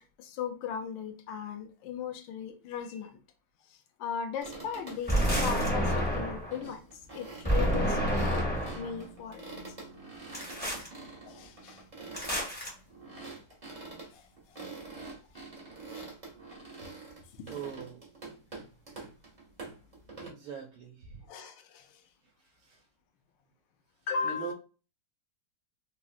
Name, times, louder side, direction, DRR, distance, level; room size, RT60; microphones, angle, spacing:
voice 1, 0.0-3.2 4.0-8.5 8.7-9.6 11.2-11.8 14.1-14.6 15.3-15.5 21.3-22.0 24.1-24.5, left 6 dB, 75° left, 1.1 m, -38 dB
sound 1, 4.4-20.3, right 3 dB, 50° right, 0.4 m, -46 dB
sound 2, 5.1-6.5 7.4-8.9 10.3-10.9 12.1-12.7, equal, 10° left, 0.4 m, -28 dB
voice 2, 17.5-18.0 20.2-21.2 22.6-22.8 24.2-24.5, right 6 dB, 75° right, 1.5 m, -41 dB
3.8 x 2.0 x 2.4 m
omnidirectional pair, 2.3 m